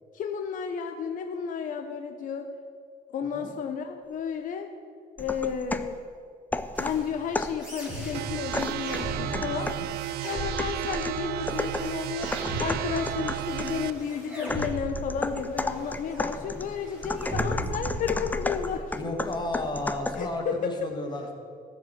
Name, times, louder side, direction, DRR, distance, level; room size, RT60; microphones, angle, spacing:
voice 1, 0.1-2.5 3.1-4.7 5.2-6.0 6.8-9.7 10.2-19.0 20.1-20.9, left 7 dB, 50° left, 6 dB, 0.8 m, -32 dB
voice 2, 3.2-3.5 9.2-9.9 13.2-13.3 17.4-17.7 19.0-21.3, left 2 dB, 25° left, 2 dB, 1.9 m, -34 dB
sound 1, 5.2-6.0 6.5-7.7 8.5-9.9 10.6-13.8 14.5-20.3, left 2 dB, 10° left, 0.5 m, -33 dB
sound 2, 6.7-18.7, right 1 dB, 5° right, 3.2 m, -38 dB
sound 3, 8.1-13.9, right 14 dB, 70° right, 0.4 m, -33 dB
14.0 x 5.5 x 7.8 m, 2.2 s
cardioid pair, 110°, 17 cm